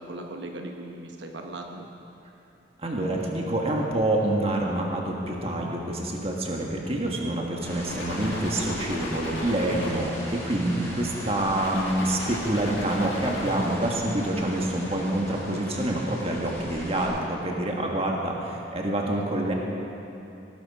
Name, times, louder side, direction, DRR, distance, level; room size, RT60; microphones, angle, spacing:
voice 1, 0.0-1.9 11.2-11.3 16.3-16.4, right 2 dB, 85° right, 3 dB, 1.0 m, -39 dB
voice 2, 2.8-19.5, right 1 dB, 35° right, -1 dB, 1.7 m, -27 dB
sound 1, 7.6-17.1, left 1 dB, 15° left, 3.5 m, -40 dB
sound 2, 7.9-11.1 11.5-13.8, left 1 dB, 85° left, 1.8 m, -37 dB
17.0 x 11.5 x 4.9 m, 2.8 s
head